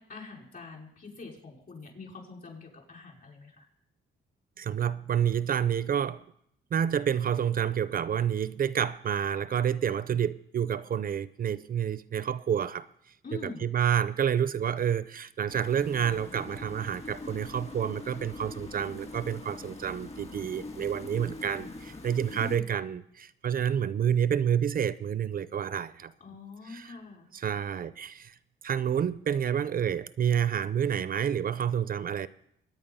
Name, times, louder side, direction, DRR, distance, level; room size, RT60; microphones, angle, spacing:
voice 1, 0.0-3.7 13.2-13.7 22.2-22.7 26.2-27.3, left 4 dB, 45° left, 5.4 m, -44 dB
voice 2, 4.6-6.2 6.7-12.9 13.3-26.1 26.6-27.0 27.3-28.4 28.6-32.3, right 8 dB, 45° right, 0.6 m, -29 dB
sound 1, 15.5-22.6, left 2 dB, 30° left, 2.0 m, -43 dB
22.5 x 9.5 x 5.5 m
cardioid pair, 90°, 20 cm